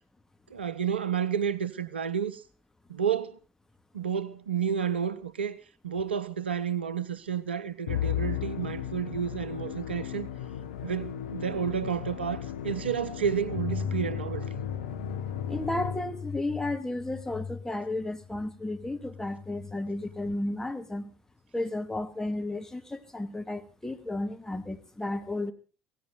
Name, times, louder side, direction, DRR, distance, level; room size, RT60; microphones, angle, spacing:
voice 1, 0.5-2.4 2.9-3.4 3.9-5.6 5.8-10.3 10.8-14.5, right 7 dB, 85° right, 0.8 m, -30 dB
Musical instrument, 7.9-16.4, left 11 dB, 75° left, 1.0 m, -36 dB
sound 1, 13.5-20.3, left 6 dB, 40° left, 1.7 m, -38 dB
voice 2, 15.5-21.1 21.5-25.5, left 2 dB, 10° left, 2.2 m, -33 dB
17.0 x 16.5 x 3.9 m
figure-of-eight pair, 60°, 6 cm